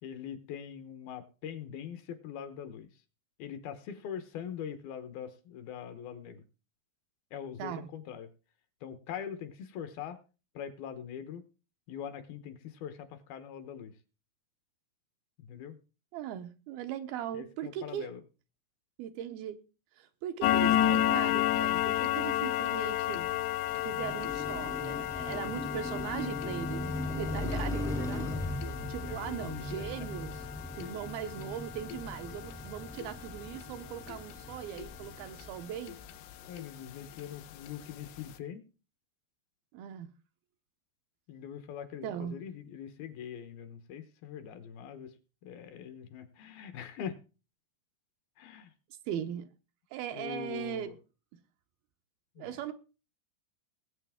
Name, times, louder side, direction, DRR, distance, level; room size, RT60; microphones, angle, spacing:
voice 1, 0.0-2.9 3.4-6.4 7.3-8.3 8.8-10.2 10.5-11.4 11.9-14.0 15.4-15.8 17.3-18.2 28.6-29.9 30.7-30.9 36.5-38.6 41.3-45.2 45.4-47.2 48.4-48.7 50.1-51.0 52.4-52.6, left 8 dB, 70° left, 2.7 m, -42 dB
voice 2, 16.1-18.1 19.0-19.6 19.9-23.3 23.8-28.3 28.9-30.4 30.8-36.0 39.7-40.1 42.0-42.4 49.1-49.5 49.9-50.9 52.4-52.7, right 10 dB, 75° right, 2.4 m, -39 dB
sound 1, 20.4-35.5 35.9-36.1 36.6-36.7 37.1-37.2 37.7-37.8 38.1-38.2, left 13 dB, 90° left, 3.1 m, -32 dB
Car passing by, 23.7-35.9, left 1 dB, 5° left, 0.5 m, -39 dB
20.5 x 8.1 x 3.5 m
omnidirectional pair, 4.7 m